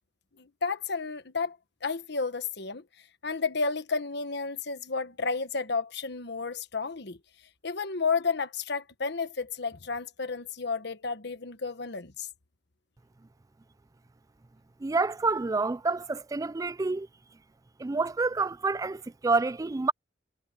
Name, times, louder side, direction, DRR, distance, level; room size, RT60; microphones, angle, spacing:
voice 1, 0.4-2.8 3.2-7.2 7.6-12.3, left 4 dB, 65° left, 1.3 m, -32 dB
voice 2, 14.8-17.1 17.8-19.9, right 3 dB, 20° right, 0.3 m, -28 dB
head